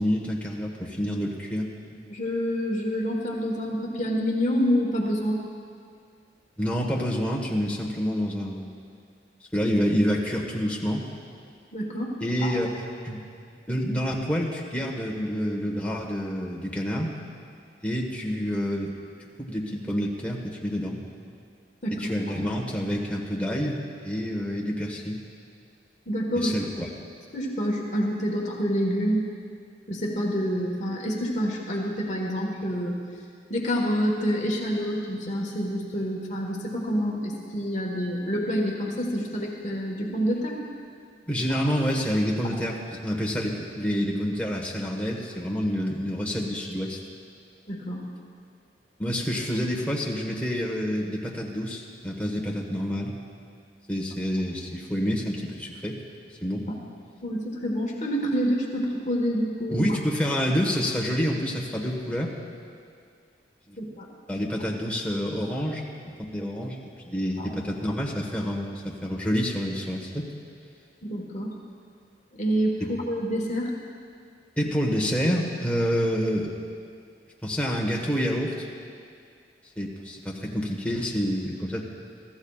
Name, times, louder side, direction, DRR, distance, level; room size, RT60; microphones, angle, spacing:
voice 1, 0.0-1.7 6.6-8.7 9.5-11.0 12.2-12.7 13.0-13.2 13.7-17.1 17.8-18.9 19.4-21.0 22.0-25.2 26.3-26.9 41.3-47.0 49.0-53.1 53.9-56.0 56.4-56.6 59.7-62.3 63.7-63.8 64.3-65.9 66.3-70.3 74.6-76.5 77.4-78.7 79.8-81.8, equal, 5° left, -2 dB, 1.4 m, -28 dB
voice 2, 2.1-5.4 11.7-12.5 21.8-22.0 22.3-22.4 26.1-26.5 27.3-29.2 29.9-33.0 33.5-40.6 41.5-41.6 47.7-48.1 56.7-56.8 57.2-59.9 63.8-64.1 67.4-67.5 71.0-71.5 72.3-73.7, equal, 40° left, -1 dB, 1.4 m, -27 dB
24.0 x 14.0 x 2.4 m, 2.2 s
head